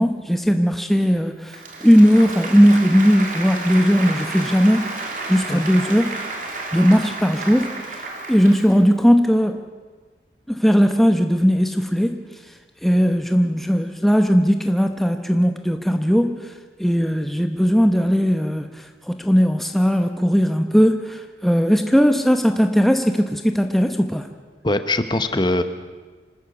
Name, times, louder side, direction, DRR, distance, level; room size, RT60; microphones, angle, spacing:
voice 1, 0.0-6.2 6.7-8.0 8.3-9.6 10.5-12.2 12.8-16.5 16.8-24.3, equal, ahead, 6 dB, 0.9 m, -18 dB
Applause, 1.5-8.9, right 3 dB, 50° right, 3.1 m, -31 dB
voice 2, 24.6-25.6, left 2 dB, 25° left, 10 dB, 1.0 m, -21 dB
25.5 x 13.0 x 8.3 m, 1.4 s
head